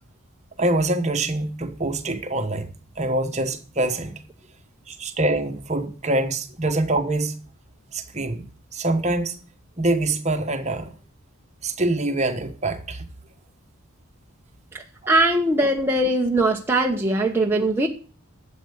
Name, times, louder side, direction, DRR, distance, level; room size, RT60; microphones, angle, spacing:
voice 1, 0.6-4.1 4.9-7.3 7.9-9.4 9.8-11.0 11.6-13.0 15.0-15.1, right 2 dB, 30° right, 1.3 m, -25 dB
voice 2, 14.7-17.9, right 1 dB, 10° right, 0.9 m, -21 dB
11.5 x 7.8 x 7.0 m
head